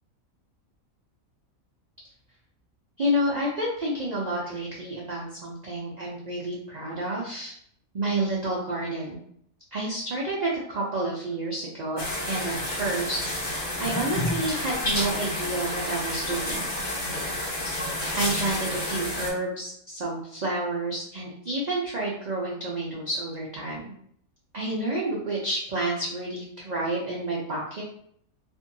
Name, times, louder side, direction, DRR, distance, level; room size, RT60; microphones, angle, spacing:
voice 1, 3.0-7.5 7.9-9.2 9.7-16.7 18.1-23.9 24.5-27.8, right 1 dB, 75° right, -4 dB, 0.4 m, -30 dB
sound 1, 12.0-19.3, left 1 dB, 40° left, 0.8 m, -30 dB
2.6 x 2.6 x 2.6 m, 0.66 s
omnidirectional pair, 1.5 m